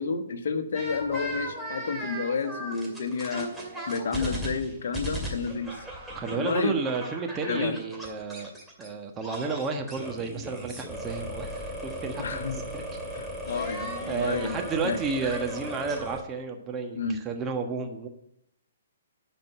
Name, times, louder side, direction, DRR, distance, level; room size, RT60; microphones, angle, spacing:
voice 1, 0.0-3.5 3.9-5.8 6.3-6.8 7.5-7.8 12.2-12.6 13.1-15.0 16.9-17.2, left 4 dB, 60° left, 4 dB, 1.4 m, -30 dB
sound 1, 0.7-8.9 9.2-16.2, right 1 dB, ahead, 2.4 m, -37 dB
voice 2, 6.1-8.5 8.8-12.8 13.6-13.7 14.1-18.1, right 4 dB, 20° right, 3 dB, 1.3 m, -32 dB
11.0 x 5.2 x 8.3 m, 0.78 s
figure-of-eight pair, 130°, 0 cm